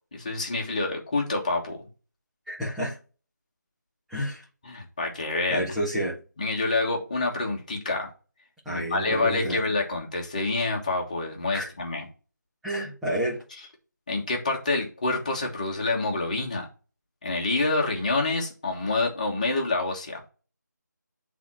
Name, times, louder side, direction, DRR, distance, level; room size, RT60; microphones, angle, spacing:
voice 1, 0.1-1.8 4.6-5.7 6.4-8.1 8.7-12.1 14.1-16.7 17.2-20.2, left 3 dB, 25° left, 0 dB, 1.5 m, -27 dB
voice 2, 2.5-3.0 4.1-4.4 5.5-6.2 8.6-9.6 11.5-11.7 12.6-13.4, equal, ahead, -9 dB, 0.7 m, -29 dB
7.3 x 3.6 x 4.3 m, 0.35 s
figure-of-eight pair, 175°, 10 cm